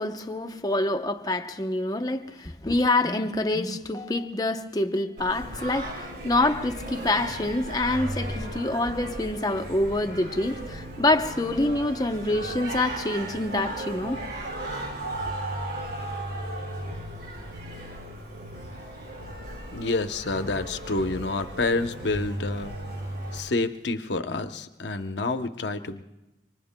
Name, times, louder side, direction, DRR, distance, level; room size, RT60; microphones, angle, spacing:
voice 1, 0.0-14.2, left 2 dB, 20° left, 0.7 m, -26 dB
Singing, 5.2-23.4, right 1 dB, 75° right, 5.2 m, -36 dB
voice 2, 19.7-22.7 23.3-26.0, left 3 dB, 75° left, 0.8 m, -28 dB
27.0 x 24.5 x 2.2 m
head